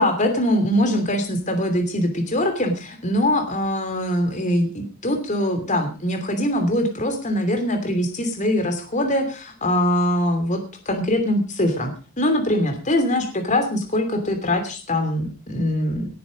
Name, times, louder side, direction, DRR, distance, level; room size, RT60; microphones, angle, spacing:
voice 1, 0.0-10.6 10.9-16.1, left 1 dB, 35° left, 6 dB, 2.9 m, -22 dB
18.5 x 9.8 x 5.1 m, 0.35 s
head